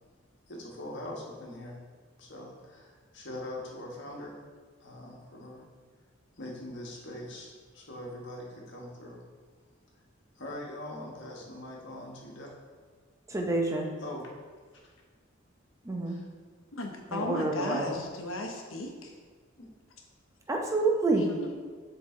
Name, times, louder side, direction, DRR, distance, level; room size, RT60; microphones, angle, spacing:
voice 1, 0.5-1.8 2.2-4.3 4.8-5.6 6.4-7.5 7.7-9.2 10.4-12.5 14.0-14.2 16.1-16.3 19.6-19.7, left 1 dB, 60° left, -2 dB, 1.4 m, -42 dB
voice 2, 13.3-13.9 15.8-16.2 17.1-18.0 20.5-21.3, right 2 dB, 15° right, 1 dB, 0.8 m, -28 dB
voice 3, 16.7-19.1 21.1-21.6, left 2 dB, 85° left, 2 dB, 1.0 m, -36 dB
7.5 x 4.0 x 3.7 m, 1.5 s
head